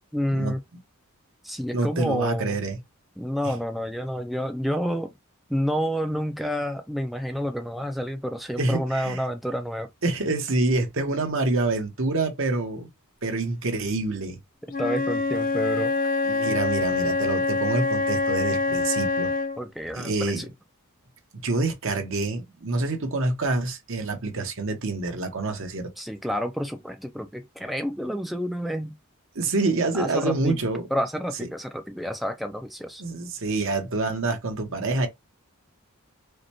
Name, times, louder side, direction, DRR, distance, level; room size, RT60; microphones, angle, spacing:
voice 1, 0.1-0.6 1.4-2.6 3.2-5.1 5.5-9.9 14.8-15.9 19.6-20.5 26.0-28.9 29.9-30.6 30.9-33.0, equal, ahead, 0.3 m, -29 dB
voice 2, 1.7-2.8 8.6-9.2 10.0-12.9 13.2-14.4 16.2-19.3 19.9-20.5 21.4-25.9 29.3-30.9 33.0-35.1, right 2 dB, 60° right, 1.1 m, -27 dB
Wind instrument woodwind instrument, 14.7-19.6, left 3 dB, 40° left, 0.7 m, -25 dB
4.9 x 2.2 x 2.9 m
head